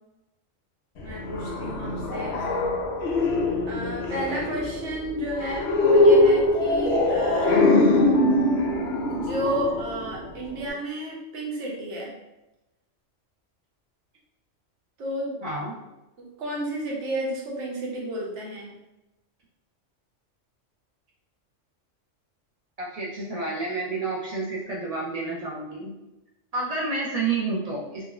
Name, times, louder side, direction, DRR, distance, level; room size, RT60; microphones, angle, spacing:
sound 1, 1.0-10.7, left 2 dB, 65° left, 0.8 m, -22 dB
voice 1, 1.0-2.4 3.7-7.7 9.1-12.2 15.0-15.4 16.2-18.7, right 1 dB, 70° right, -2 dB, 1.0 m, -32 dB
voice 2, 15.4-15.8 22.8-25.9 26.5-28.0, right 3 dB, 55° right, -4 dB, 0.4 m, -29 dB
3.5 x 2.0 x 2.3 m, 0.96 s
omnidirectional pair, 1.3 m